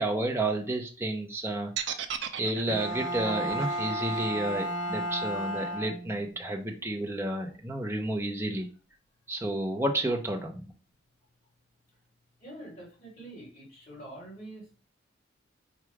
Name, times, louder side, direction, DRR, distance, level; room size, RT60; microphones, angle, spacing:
voice 1, 0.0-1.9 2.4-8.7 9.3-10.7, right 1 dB, 10° right, 1 dB, 0.7 m, -31 dB
sound 1, 1.8-5.8, right 9 dB, 65° right, 0.5 m, -37 dB
Bowed string instrument, 2.7-6.4, equal, 85° left, 1.6 m, -33 dB
voice 2, 12.4-14.6, right 1 dB, 35° left, -5 dB, 2.3 m, -45 dB
4.6 x 2.5 x 4.6 m, 0.35 s
head